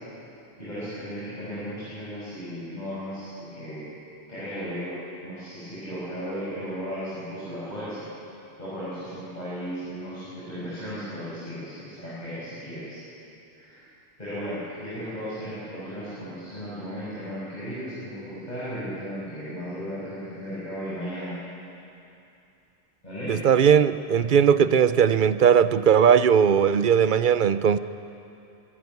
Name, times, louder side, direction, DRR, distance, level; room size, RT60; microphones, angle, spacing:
voice 1, 0.6-3.8 4.3-8.1 8.6-13.0 13.5-13.8 14.2-21.4 23.0-23.4, equal, 40° left, -11 dB, 6.4 m, -35 dB
voice 2, 23.3-27.8, right 7 dB, 55° right, 13 dB, 0.7 m, -19 dB
25.0 x 12.5 x 9.6 m, 2.7 s
omnidirectional pair, 1.2 m